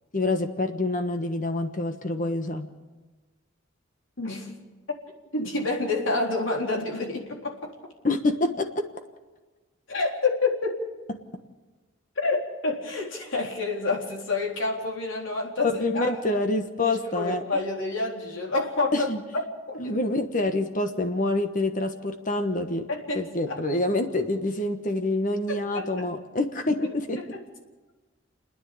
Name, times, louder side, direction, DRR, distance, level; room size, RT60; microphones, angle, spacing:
voice 1, 0.1-2.7 8.0-8.8 15.6-17.4 18.9-19.2 19.8-22.9 23.1-27.2, left 2 dB, 40° left, 7 dB, 1.2 m, -26 dB
voice 2, 4.2-4.6 5.3-7.7 9.9-10.8 12.2-16.4 16.8-19.8 22.9-23.6 25.7-26.1 27.2-27.3, left 3 dB, 75° left, -1 dB, 3.9 m, -28 dB
30.0 x 10.0 x 8.6 m, 1.2 s
head